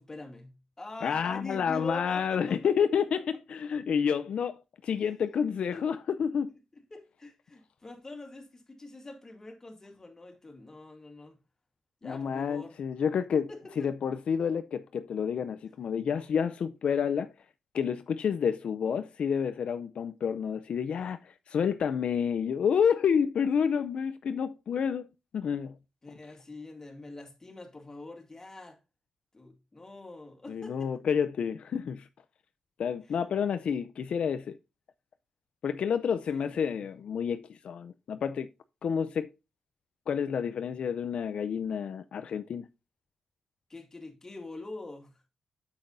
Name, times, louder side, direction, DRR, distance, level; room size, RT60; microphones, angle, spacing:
voice 1, 0.0-2.7 5.7-5.9 6.7-11.4 12.0-12.7 13.3-13.9 26.0-28.8 29.3-31.0 33.1-33.2 36.3-36.7 43.7-45.3, left 2 dB, 25° left, 2.4 m, -44 dB
voice 2, 1.0-6.5 12.0-13.5 13.8-17.3 17.7-25.1 25.3-25.8 30.5-32.1 32.8-34.6 35.6-38.5 38.8-39.3 40.1-42.7, left 7 dB, 65° left, 0.5 m, -29 dB
8.8 x 7.3 x 2.6 m
cardioid pair, 90°, 2 cm